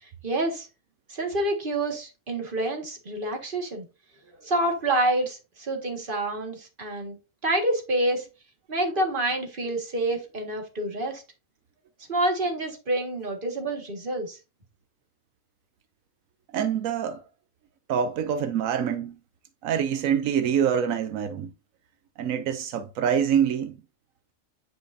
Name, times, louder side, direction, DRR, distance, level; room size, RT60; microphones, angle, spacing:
voice 1, 0.0-0.7 1.1-3.9 4.4-7.2 7.4-8.3 8.7-11.2 12.1-14.4, right 1 dB, 40° right, 1.9 m, -27 dB
voice 2, 16.5-17.2 17.9-19.2 19.6-21.5 22.2-23.8, right 8 dB, 85° right, 1.1 m, -25 dB
9.5 x 5.1 x 2.7 m
omnidirectional pair, 1.4 m